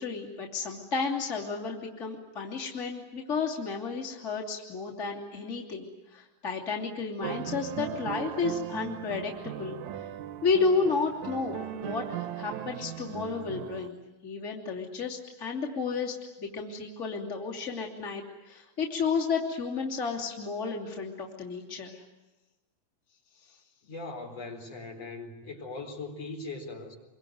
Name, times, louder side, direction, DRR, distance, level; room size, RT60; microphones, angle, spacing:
voice 1, 0.0-9.8 10.4-14.0 14.2-22.0, left 4 dB, 25° left, -2 dB, 3.0 m, -32 dB
sound 1, 7.2-13.9, right 11 dB, 70° right, 2.4 m, -38 dB
voice 2, 23.8-27.0, left 3 dB, 55° left, 2 dB, 5.4 m, -40 dB
26.5 x 24.0 x 9.4 m, 1.1 s
omnidirectional pair, 3.6 m